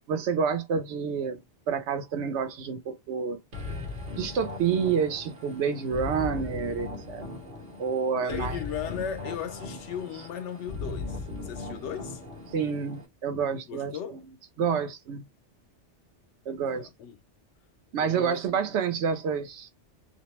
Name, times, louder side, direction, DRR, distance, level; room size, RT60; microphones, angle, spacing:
voice 1, 0.1-1.4 1.7-3.4 4.2-7.2 7.8-8.6 12.5-14.2 14.6-15.2 16.5-16.9 17.9-19.7, right 6 dB, 75° right, 0.9 m, -28 dB
sound 1, 3.5-13.1, left 3 dB, 60° right, 1.1 m, -38 dB
voice 2, 8.1-12.2 13.6-14.2 16.7-17.2 18.0-18.4, left 8 dB, 80° left, 0.9 m, -36 dB
2.5 x 2.0 x 2.9 m
omnidirectional pair, 1.2 m